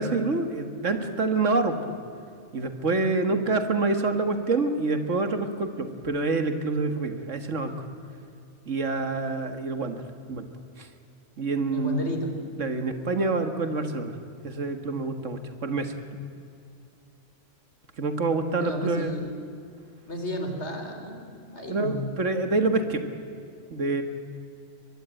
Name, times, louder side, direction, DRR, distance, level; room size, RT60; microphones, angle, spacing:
voice 1, 0.0-1.8 2.5-7.9 8.7-10.0 10.3-10.4 10.8-10.9 11.4-12.1 12.6-14.1 14.4-16.2 18.0-19.1 21.7-23.0 23.7-24.0, right 3 dB, 70° right, 8 dB, 2.1 m, -27 dB
voice 2, 11.7-12.3 18.6-19.3 20.1-22.1, equal, 60° left, 4 dB, 3.9 m, -32 dB
23.0 x 22.0 x 9.1 m, 2.5 s
omnidirectional pair, 1.3 m